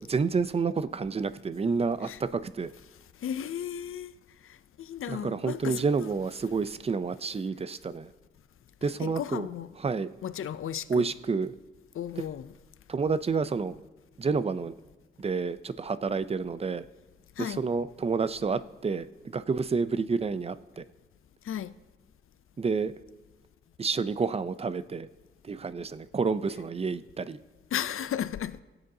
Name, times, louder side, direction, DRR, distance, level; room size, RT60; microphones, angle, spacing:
voice 1, 0.0-2.7 5.1-8.1 8.8-9.5 9.8-10.1 10.9-11.5 12.9-13.8 14.2-14.7 15.2-16.8 17.4-20.8 22.6-22.9 23.8-25.1 25.4-27.4, right 4 dB, 30° right, 0.4 m, -29 dB
voice 2, 3.2-4.1 4.8-6.1 9.0-9.7 10.2-11.1 12.0-12.5 17.4-17.6 21.5-21.7 27.7-28.6, left 9 dB, 85° left, 0.4 m, -34 dB
20.5 x 7.9 x 2.7 m
wide cardioid pair, 120°, 21 cm